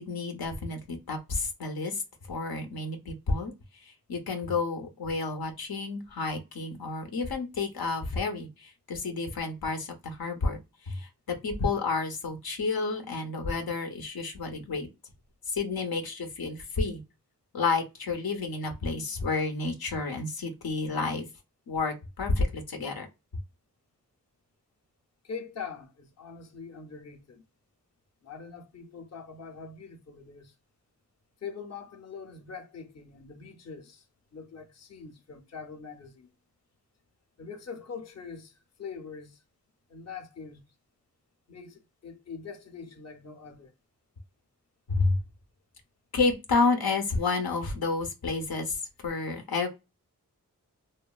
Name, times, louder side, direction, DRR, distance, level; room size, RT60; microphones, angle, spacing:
voice 1, 0.0-2.0 2.3-14.9 15.5-17.0 17.5-21.3 21.7-23.1 44.9-45.2 46.1-49.7, left 3 dB, 90° left, 0.7 m, -30 dB
voice 2, 25.2-27.4 28.2-30.5 31.4-34.1 34.3-36.3 37.4-39.4 39.9-40.6 41.5-43.7, left 5 dB, 45° left, 0.6 m, -43 dB
3.0 x 2.2 x 2.2 m
wide cardioid pair, 65°, 35 cm